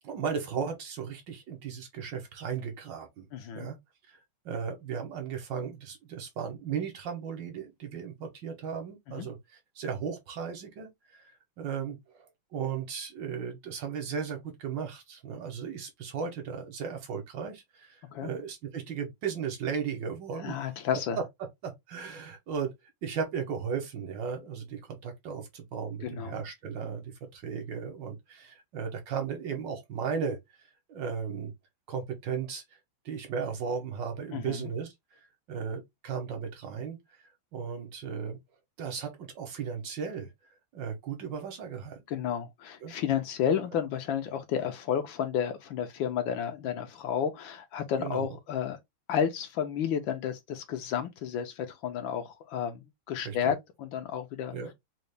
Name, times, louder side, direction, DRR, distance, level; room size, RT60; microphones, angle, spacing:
voice 1, 0.0-3.3 3.5-3.8 4.1-4.2 4.4-11.3 11.6-12.3 12.5-20.6 21.2-21.3 21.6-22.7 23.0-30.4 30.9-31.5 31.9-32.6 33.0-35.2 35.5-37.0 37.5-38.4 38.8-40.3 40.7-42.0 42.8-42.9 48.0-48.3 53.2-53.5 54.5-54.7, right 6 dB, 65° right, 1.4 m, -36 dB
voice 2, 3.3-3.7 9.2-9.3 18.1-18.3 20.4-21.2 26.0-26.4 34.3-34.7 42.1-48.8 49.1-54.5, left 8 dB, 70° left, 1.4 m, -31 dB
3.9 x 2.4 x 3.3 m
omnidirectional pair, 2.4 m